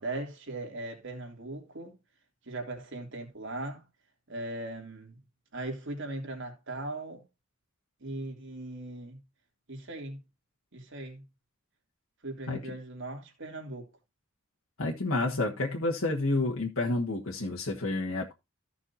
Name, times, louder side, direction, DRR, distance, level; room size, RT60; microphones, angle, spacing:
voice 1, 0.0-2.0 2.5-3.8 4.3-5.2 5.5-7.2 8.0-9.2 9.7-10.2 10.7-11.2 12.2-13.9, right 2 dB, 60° right, 3.1 m, -39 dB
voice 2, 14.8-18.3, left 2 dB, 80° left, 1.7 m, -29 dB
15.0 x 6.1 x 2.8 m
head